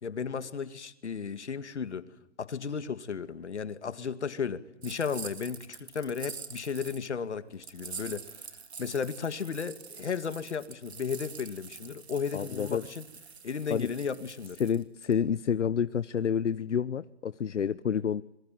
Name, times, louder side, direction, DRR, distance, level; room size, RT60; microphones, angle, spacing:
voice 1, 0.0-2.0 2.4-8.4 8.8-13.0 13.4-14.6, left 6 dB, 75° left, 12 dB, 2.2 m, -34 dB
sound 1, 4.8-7.1 7.6-15.1, right 6 dB, 65° right, 3.1 m, -45 dB
voice 2, 12.3-12.8 13.7-13.9 14.6-18.2, left 7 dB, 90° left, 15 dB, 1.0 m, -29 dB
27.5 x 22.5 x 9.3 m, 0.85 s
hypercardioid pair, 175°, 35 cm